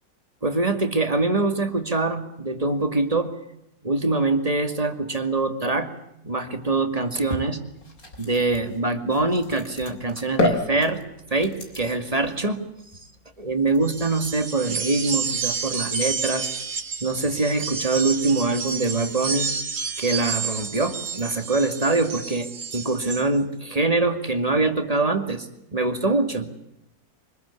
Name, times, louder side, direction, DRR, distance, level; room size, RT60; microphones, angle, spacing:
voice 1, 0.4-3.3 3.8-5.9 6.2-7.6 8.2-11.0 11.3-12.6 13.4-16.5 17.0-19.5 20.0-26.5, right 3 dB, 20° right, 7 dB, 2.2 m, -24 dB
sound 1, 7.7-21.3, left 2 dB, 50° left, 4.0 m, -35 dB
sound 2, 13.8-23.3, right 5 dB, 75° right, 2.5 m, -30 dB
25.5 x 20.0 x 8.5 m, 0.83 s
omnidirectional pair, 2.0 m